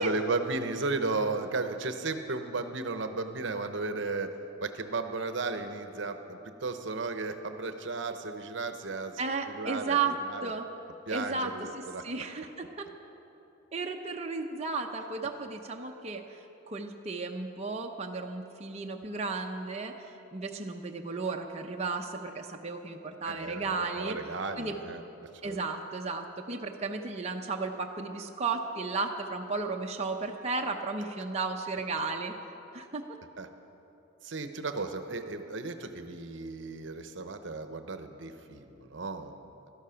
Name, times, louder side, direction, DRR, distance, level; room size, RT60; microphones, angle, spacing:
voice 1, 0.0-4.3 4.6-9.2 9.5-10.5 11.1-12.0 23.2-25.0 25.4-25.6 33.4-33.5 34.2-39.7, right 3 dB, 65° right, 8 dB, 0.9 m, -34 dB
voice 2, 9.2-10.1 10.4-10.6 11.1-12.9 13.7-24.2 24.6-24.7 25.4-32.3 32.7-33.0, right 4 dB, 30° right, 1 dB, 0.7 m, -34 dB
16.0 x 13.5 x 5.8 m, 3.0 s
head